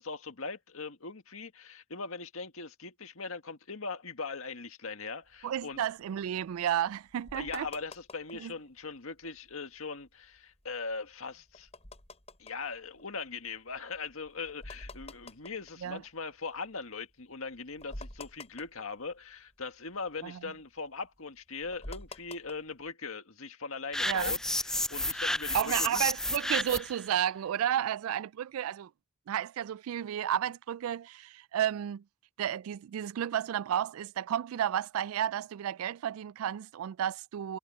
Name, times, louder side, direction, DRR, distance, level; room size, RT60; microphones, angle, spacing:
voice 1, 0.0-5.8 7.3-11.7 12.4-26.1, left 4 dB, 75° left, 1.8 m, -40 dB
sound 1, 5.3-8.6 9.0-9.1 9.2-9.5 10.0-16.7 17.1-17.2 17.5-19.6 19.9-22.9, left 2 dB, 30° left, 6.2 m, -49 dB
voice 2, 5.4-7.7 8.4-8.5 15.8-16.0 20.2-20.4 24.0-24.3 25.5-28.9 29.3-32.0 32.4-37.6, right 10 dB, 75° right, 0.3 m, -32 dB
sound 2, 23.9-27.0, left 1 dB, 5° left, 0.4 m, -31 dB
head